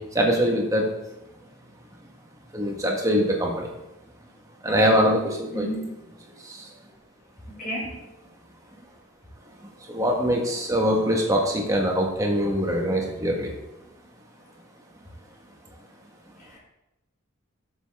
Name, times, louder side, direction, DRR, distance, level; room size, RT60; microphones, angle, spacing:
voice 1, 0.1-0.9 2.5-3.7 4.6-5.7 6.4-6.7 9.9-13.5, equal, 15° right, 0 dB, 1.6 m, -23 dB
voice 2, 5.5-6.1 6.7-6.8 7.5-8.0 16.4-16.6, equal, 40° left, -4 dB, 4.1 m, -33 dB
12.0 x 7.1 x 3.6 m, 0.92 s
head